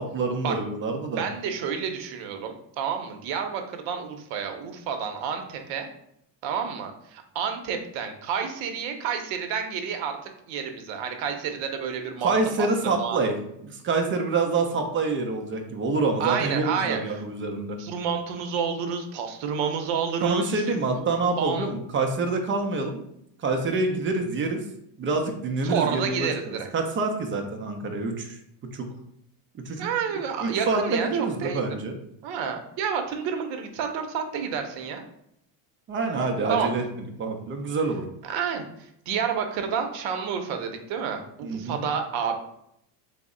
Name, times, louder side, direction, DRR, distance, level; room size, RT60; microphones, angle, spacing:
voice 1, 0.0-1.3 12.2-13.3 13.6-17.8 20.2-23.0 23.4-24.6 25.0-28.4 28.7-28.9 29.7-29.9 30.4-32.0 35.9-36.8 37.2-38.1 41.4-41.8, right 3 dB, 25° right, 4 dB, 0.4 m, -26 dB
voice 2, 1.2-5.9 6.4-13.2 16.2-17.2 17.8-21.7 25.6-26.7 29.8-31.1 31.4-31.8 32.2-35.0 36.5-36.7 38.3-42.4, right 7 dB, 65° right, 5 dB, 0.7 m, -30 dB
3.4 x 2.0 x 3.6 m, 0.74 s
supercardioid pair, 115°, 50 cm